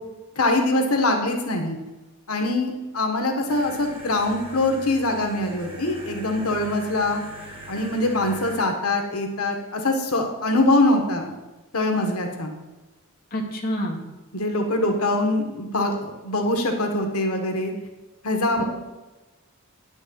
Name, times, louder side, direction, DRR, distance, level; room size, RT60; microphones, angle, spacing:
voice 1, 0.4-1.8 2.3-7.2 7.7-11.3 11.7-12.5 14.3-17.7 18.2-18.6, left 2 dB, 85° left, 3 dB, 1.5 m, -23 dB
sound 1, 3.5-8.6, right 1 dB, 25° right, 2.6 m, -40 dB
voice 2, 13.3-14.0 18.6-18.7, equal, 45° left, 0 dB, 1.6 m, -27 dB
9.7 x 6.2 x 7.6 m, 1.1 s
head